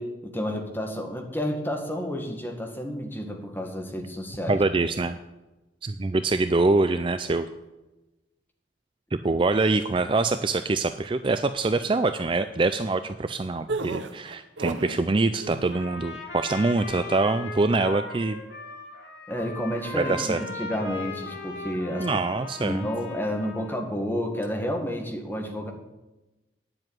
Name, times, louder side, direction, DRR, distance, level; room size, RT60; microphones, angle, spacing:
voice 1, 0.0-4.6 19.3-25.7, equal, 10° left, 2 dB, 1.7 m, -31 dB
voice 2, 4.5-5.2 5.8-7.5 9.1-18.4 19.9-20.4 22.0-22.9, right 3 dB, 30° right, 10 dB, 0.4 m, -24 dB
sound 1, 13.7-15.0 15.4-15.8, right 3 dB, 80° right, 0.8 m, -32 dB
Trumpet, 15.7-23.8, left 2 dB, 85° left, 2.6 m, -38 dB
9.7 x 7.7 x 9.2 m, 1.0 s
head